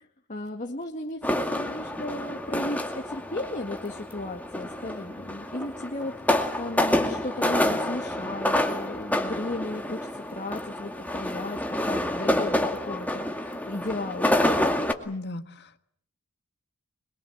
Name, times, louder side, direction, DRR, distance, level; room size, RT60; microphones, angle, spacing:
voice 1, 0.0-14.4, left 2 dB, 35° left, 1 dB, 2.0 m, -35 dB
sound 1, 1.2-14.9, left 1 dB, 5° left, 2.1 m, -28 dB
voice 2, 15.0-15.8, left 2 dB, 50° left, 10 dB, 1.6 m, -36 dB
25.0 x 22.5 x 7.9 m, 0.63 s
head